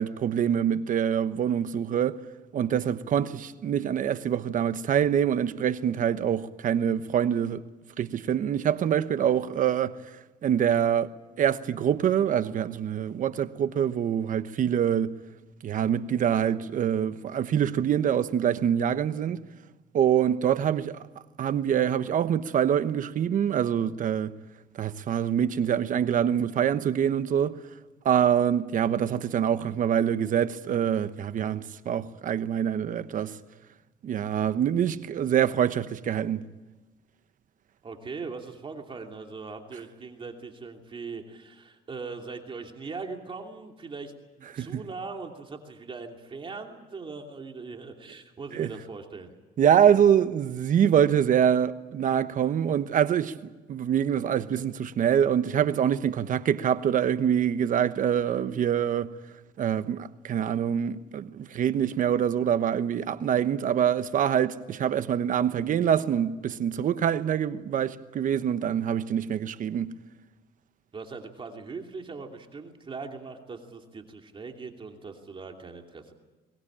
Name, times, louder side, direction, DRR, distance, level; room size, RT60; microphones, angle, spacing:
voice 1, 0.0-2.2 2.5-7.6 8.0-10.0 10.4-11.1 11.4-15.1 15.6-19.4 19.9-21.0 21.4-24.3 24.8-27.6 28.0-33.4 34.0-36.4 44.5-44.8 48.5-48.7 49.6-59.1 59.6-69.9, right 9 dB, 50° right, 1.0 m, -25 dB
voice 2, 37.8-49.3 70.9-76.1, right 4 dB, 30° right, 2.8 m, -40 dB
23.0 x 19.0 x 8.8 m
cardioid pair, 110°, 17 cm